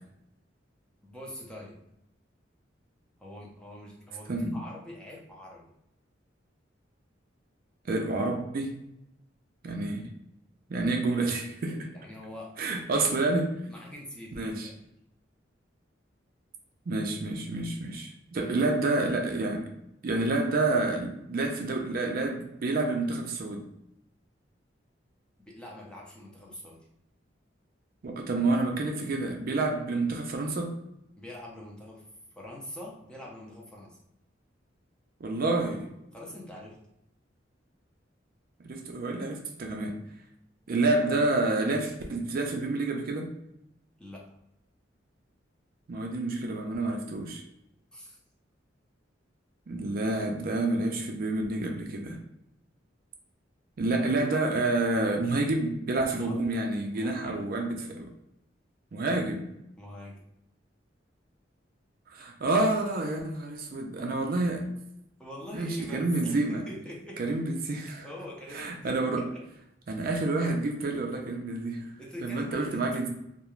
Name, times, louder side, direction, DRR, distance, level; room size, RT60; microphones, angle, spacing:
voice 1, 1.0-1.8 3.2-5.7 11.9-12.6 13.7-14.8 18.4-18.6 25.5-26.8 31.2-32.1 32.3-34.0 36.1-36.8 44.0-44.4 47.9-48.2 56.1-56.4 56.9-57.4 59.8-60.1 65.2-67.4 68.0-69.4 72.0-72.9, left 1 dB, 5° left, -3 dB, 0.5 m, -44 dB
voice 2, 7.9-8.7 9.6-10.1 10.7-11.9 12.6-13.6 14.3-14.7 16.9-19.7 20.0-23.7 28.0-30.8 35.2-35.9 38.6-40.0 40.7-43.3 45.9-47.4 49.7-52.2 53.8-58.1 58.9-59.5 62.1-64.7 65.5-66.6 67.2-68.1 68.5-69.3 69.9-71.9 72.2-73.1, right 2 dB, 50° right, 2 dB, 0.4 m, -29 dB
2.3 x 2.2 x 3.0 m, 0.80 s
head